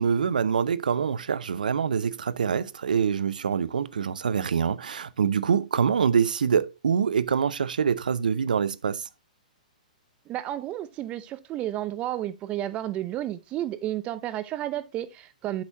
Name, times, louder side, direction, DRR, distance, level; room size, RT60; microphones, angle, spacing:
voice 1, 0.0-9.0, right 7 dB, 75° right, 0.6 m, -25 dB
voice 2, 10.3-15.6, right 13 dB, 25° right, 0.6 m, -32 dB
8.5 x 6.1 x 2.7 m
hypercardioid pair, 120°, 4 cm